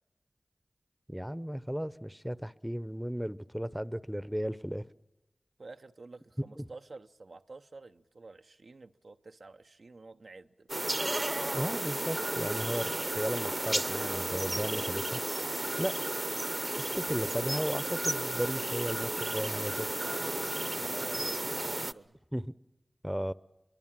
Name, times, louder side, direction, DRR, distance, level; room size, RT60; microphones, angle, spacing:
voice 1, 1.1-4.8 6.6-6.7 11.5-15.2 15.8-15.9 16.8-19.9 22.3-22.4 23.0-23.3, equal, 5° right, 0.7 m, -35 dB
voice 2, 5.6-10.7 20.8-22.2, right 3 dB, 80° right, 0.8 m, -50 dB
sound 1, 10.7-21.9, right 1 dB, 35° right, 0.8 m, -33 dB
23.5 x 23.0 x 7.5 m
cardioid pair, 40°, 0 cm